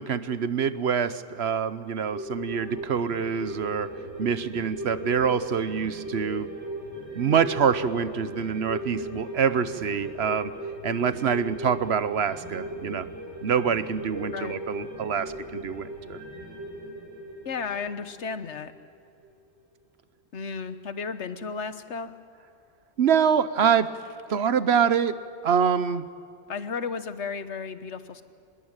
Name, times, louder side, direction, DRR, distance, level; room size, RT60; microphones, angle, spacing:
voice 1, 0.0-3.9 4.2-6.5 7.1-10.5 10.8-13.1 13.4-16.2 23.0-23.9 24.3-25.2 25.4-26.0, right 7 dB, 65° right, 13 dB, 1.1 m, -25 dB
sound 1, 2.1-18.9 19.2-19.3, right 1 dB, 85° right, 5.5 m, -38 dB
voice 2, 17.4-18.7 20.3-22.1 26.5-28.2, left 5 dB, 80° left, 11 dB, 1.4 m, -33 dB
25.0 x 21.5 x 8.9 m, 2.4 s
omnidirectional pair, 1.2 m